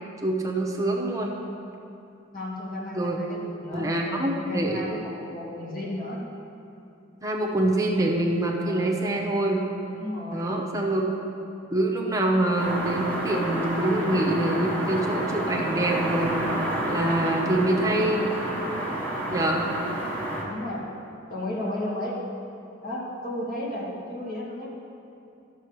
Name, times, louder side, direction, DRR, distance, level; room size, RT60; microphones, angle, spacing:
voice 1, 0.2-1.4 2.9-3.2 3.7-4.8 7.2-9.7 10.3-11.0 11.7-16.3 16.9-18.3 19.3-19.6, right 1 dB, 15° right, -1 dB, 1.0 m, -25 dB
voice 2, 2.3-6.2 8.6-8.9 9.9-10.5 20.5-20.8 21.3-22.2 22.8-24.7, left 1 dB, 45° left, -6 dB, 2.2 m, -34 dB
sound 1, 12.6-20.4, right 1 dB, 10° left, 1.3 m, -29 dB
12.0 x 6.8 x 4.8 m, 2.6 s
head